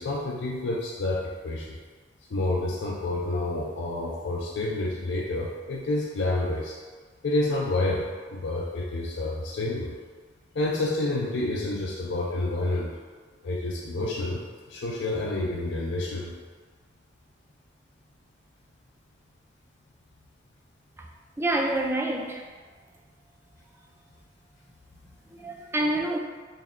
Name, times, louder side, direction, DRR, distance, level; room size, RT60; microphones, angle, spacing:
voice 1, 0.0-1.8 2.3-6.7 7.2-10.0 10.5-12.9 13.4-14.4 14.7-16.3, left 2 dB, 75° left, -3 dB, 0.4 m, -29 dB
voice 2, 21.4-22.4 25.3-26.2, right 1 dB, 15° right, 0 dB, 0.3 m, -27 dB
3.9 x 2.2 x 3.6 m, 1.5 s
head